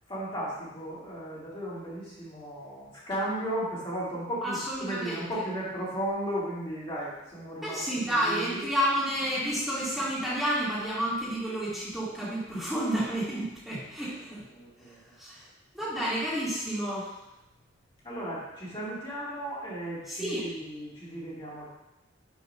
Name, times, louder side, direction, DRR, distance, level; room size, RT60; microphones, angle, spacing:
voice 1, 0.1-8.7 14.1-14.2 14.5-15.0 18.0-21.7, right 1 dB, 25° left, -8 dB, 1.9 m, -35 dB
voice 2, 4.4-5.2 7.6-14.4 14.9-15.5 15.7-17.2 20.1-20.4, equal, ahead, -10 dB, 1.7 m, -30 dB
6.2 x 2.9 x 5.3 m, 0.90 s
head